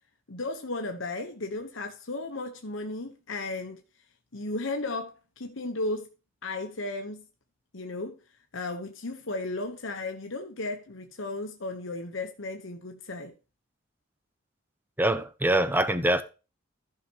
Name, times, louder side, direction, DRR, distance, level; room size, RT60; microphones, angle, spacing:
voice 1, 0.3-3.8 4.3-6.1 6.4-7.2 7.7-8.2 8.5-13.3, left 2 dB, 70° left, 1.1 m, -34 dB
voice 2, 15.0-16.2, right 1 dB, 10° right, 0.8 m, -24 dB
14.5 x 5.8 x 3.0 m
head